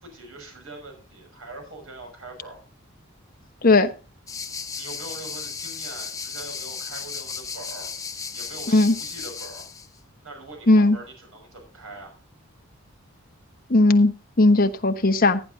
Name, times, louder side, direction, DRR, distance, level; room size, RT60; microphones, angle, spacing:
voice 1, 0.0-2.6 4.8-7.9 8.3-9.7 10.2-12.2, right 2 dB, 75° right, 6.1 m, -42 dB
sound 1, 4.3-9.9, left 5 dB, 15° left, 0.9 m, -35 dB
voice 2, 10.7-11.0 13.7-14.1 14.4-15.4, left 2 dB, 45° left, 1.1 m, -17 dB
17.5 x 10.0 x 2.7 m
head